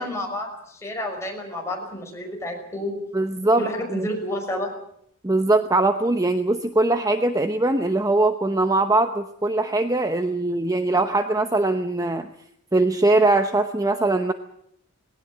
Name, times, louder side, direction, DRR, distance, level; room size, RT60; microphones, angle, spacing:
voice 1, 0.0-3.0 3.6-4.7, left 1 dB, 15° left, 1 dB, 5.8 m, -30 dB
voice 2, 3.1-3.6 3.9-4.1 5.2-12.3 12.7-14.3, right 2 dB, 15° right, 8 dB, 0.8 m, -21 dB
19.5 x 18.0 x 8.8 m, 0.70 s
head